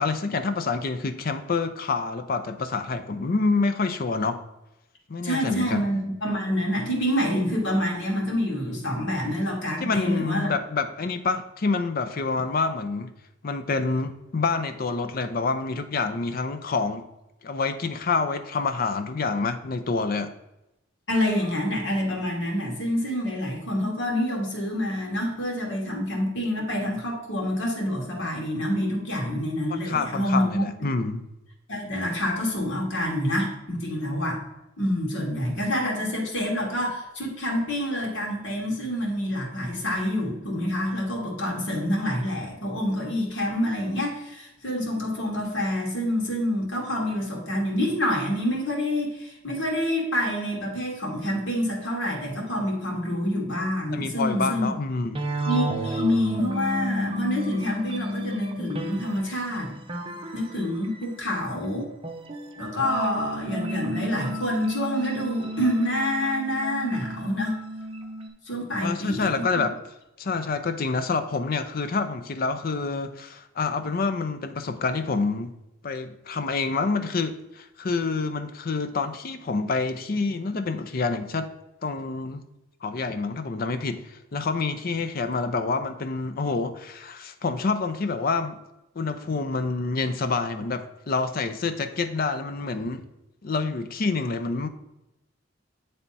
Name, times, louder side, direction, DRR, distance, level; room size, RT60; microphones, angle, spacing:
voice 1, 0.0-4.4 5.1-5.9 9.8-13.1 13.4-17.1 17.4-20.3 29.7-31.2 53.9-55.2 68.8-69.7 70.2-75.5 75.8-81.5 81.8-82.4 82.8-88.6 89.0-93.0 93.4-94.7, left 4 dB, 50° left, 9 dB, 0.5 m, -27 dB
voice 2, 5.2-10.5 21.1-30.6 31.7-34.4 34.8-54.7 55.4-59.7 60.3-61.9 62.6-67.6 68.5-69.4, left 1 dB, 75° left, -2 dB, 1.9 m, -27 dB
sound 1, 55.1-61.3 62.0-68.3, right 1 dB, 30° right, 0.7 m, -32 dB
8.6 x 3.4 x 4.1 m, 0.91 s
head